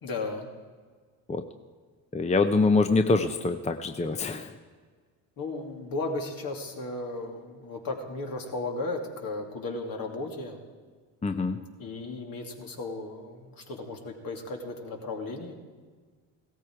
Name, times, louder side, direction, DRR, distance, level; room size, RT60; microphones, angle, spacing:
voice 1, 0.0-0.5 5.4-10.6 11.8-15.5, left 2 dB, 55° left, 2 dB, 2.6 m, -35 dB
voice 2, 2.1-4.5 11.2-11.6, left 3 dB, 15° left, 8 dB, 0.8 m, -24 dB
16.5 x 13.5 x 4.7 m, 1.5 s
supercardioid pair, 70°, 40 cm